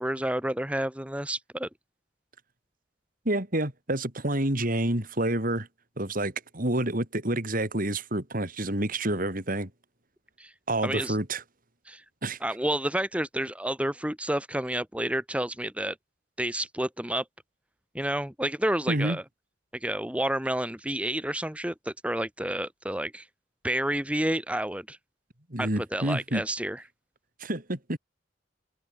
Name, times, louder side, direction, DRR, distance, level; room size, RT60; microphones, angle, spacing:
voice 1, 0.0-1.7 10.4-10.5 10.8-11.2 11.9-12.0 12.4-16.0 16.4-17.2 17.9-19.2 19.7-23.3 23.6-25.0 25.6-26.8, right 1 dB, 5° right, 2.4 m, -30 dB
voice 2, 3.2-5.7 6.0-9.7 10.7-11.4 12.2-12.4 18.9-19.2 25.5-26.4 27.4-28.0, right 1 dB, 50° right, 4.7 m, -28 dB
head